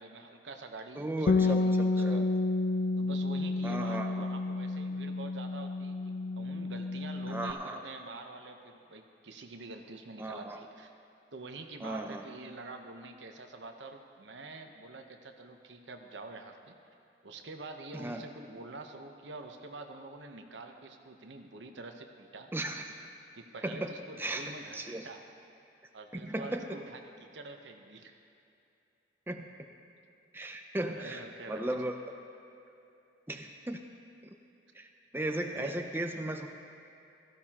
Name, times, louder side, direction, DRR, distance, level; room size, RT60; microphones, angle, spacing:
voice 1, 0.0-2.2 3.0-10.9 11.3-16.8 17.2-22.5 23.4-25.2 25.9-28.1 31.0-31.6 35.5-35.8, right 3 dB, 85° right, 4 dB, 1.0 m, -46 dB
voice 2, 0.9-1.6 2.0-2.3 3.6-4.3 7.3-7.8 10.2-10.6 11.8-12.2 17.9-18.3 22.5-22.8 23.6-24.4 24.7-25.1 26.1-26.7 29.3-29.5 30.3-31.2 31.5-32.0 33.3-33.9 34.7-36.5, right 1 dB, 10° right, 4 dB, 0.6 m, -36 dB
Bass guitar, 1.3-7.5, left 3 dB, 55° left, 0.4 m, -30 dB
16.5 x 14.0 x 2.9 m, 2.7 s
head